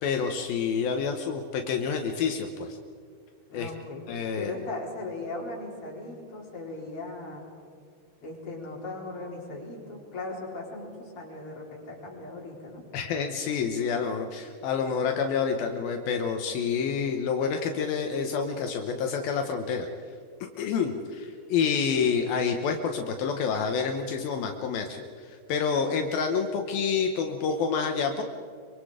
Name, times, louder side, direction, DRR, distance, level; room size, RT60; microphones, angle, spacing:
voice 1, 0.0-2.8 3.5-3.7 4.1-4.5 12.9-19.9 20.6-28.2, left 6 dB, 75° left, 4 dB, 2.8 m, -28 dB
voice 2, 3.5-4.0 4.3-7.4 8.2-12.8 25.8-26.0, left 2 dB, 35° left, -3 dB, 5.0 m, -38 dB
25.0 x 24.5 x 5.0 m, 2.1 s
omnidirectional pair, 4.4 m